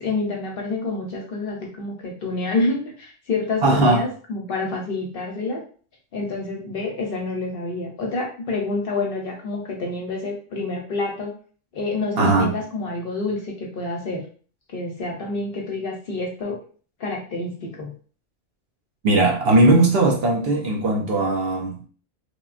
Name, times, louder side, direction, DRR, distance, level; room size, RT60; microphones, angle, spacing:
voice 1, 0.0-5.6 6.1-11.3 11.7-14.2 14.7-16.6 17.0-17.9, left 3 dB, 60° left, 0 dB, 0.7 m, -28 dB
voice 2, 3.6-4.0 12.2-12.5 19.0-21.8, right 2 dB, 65° right, 0 dB, 0.7 m, -18 dB
3.0 x 2.2 x 2.4 m, 0.41 s
omnidirectional pair, 1.3 m